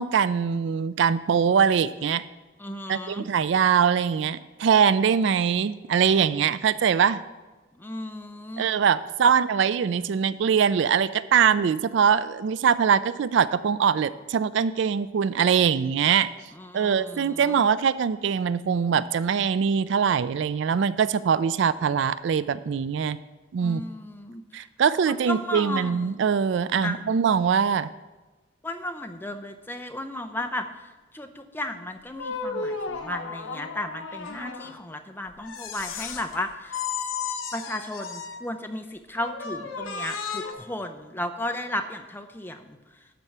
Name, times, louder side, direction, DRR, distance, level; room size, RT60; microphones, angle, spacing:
voice 1, 0.0-2.2 2.9-7.2 8.6-16.3 16.7-23.2 23.5-23.8 24.5-27.9, right 7 dB, 60° right, 16 dB, 0.3 m, -22 dB
voice 2, 2.6-3.3 7.8-8.7 9.2-9.3 16.5-17.6 23.6-24.4 25.0-26.1 26.8-27.0 28.6-36.8 37.5-42.8, left 1 dB, 10° left, 7 dB, 0.6 m, -34 dB
sound 1, 32.1-34.8 35.4-36.4 36.7-38.5 39.2-40.5, left 5 dB, 80° left, 1.0 m, -34 dB
12.0 x 4.5 x 7.3 m, 1.2 s
head